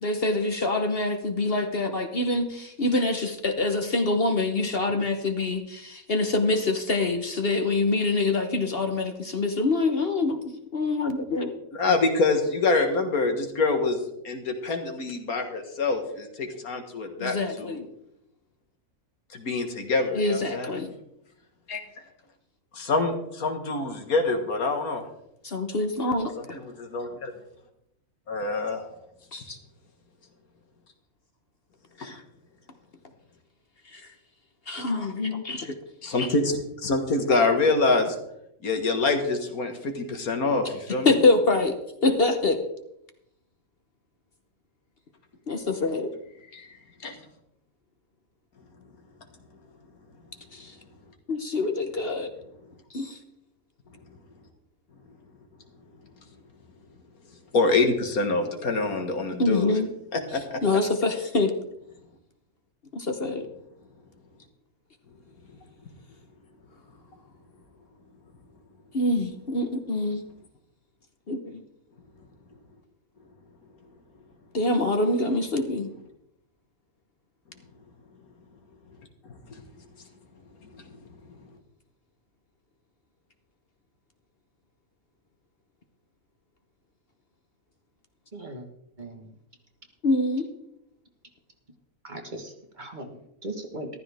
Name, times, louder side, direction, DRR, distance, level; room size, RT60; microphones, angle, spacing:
voice 1, 0.0-11.5 17.2-17.9 20.1-20.9 25.4-26.6 29.3-29.6 32.0-32.2 33.9-34.0 34.7-35.8 41.0-41.8 42.0-42.6 45.5-46.1 50.5-50.7 51.3-52.3 52.9-53.2 59.4-59.9 60.6-61.5 62.9-63.5 68.9-70.2 71.3-71.6 74.5-75.9 90.0-90.5, left 2 dB, 45° left, 6 dB, 1.2 m, -25 dB
voice 2, 11.8-14.0 14.2-17.8 19.3-20.8 21.7-21.8 22.7-25.0 26.5-27.3 28.3-28.8 36.0-38.1 38.6-41.1 46.5-46.7 47.0-47.2 57.5-59.7 60.1-60.6, left 3 dB, 80° left, 5 dB, 2.1 m, -25 dB
voice 3, 88.3-88.7 89.0-89.3 92.0-94.0, right 1 dB, 35° right, 4 dB, 1.6 m, -39 dB
14.5 x 13.0 x 3.5 m, 0.78 s
omnidirectional pair, 1.5 m